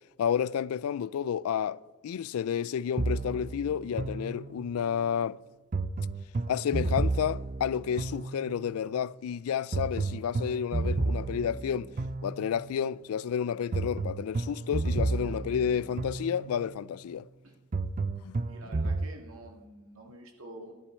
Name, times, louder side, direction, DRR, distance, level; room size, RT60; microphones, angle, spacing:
voice 1, 0.2-5.4 6.5-11.9 12.2-17.2 18.2-18.4, left 8 dB, 90° left, 0.3 m, -31 dB
sound 1, 3.0-4.9 5.7-8.8 9.7-12.8 13.7-16.8 17.7-19.1, right 3 dB, 40° right, 0.5 m, -32 dB
voice 2, 18.5-20.7, right 1 dB, 80° right, 1.9 m, -48 dB
12.5 x 11.5 x 4.4 m
head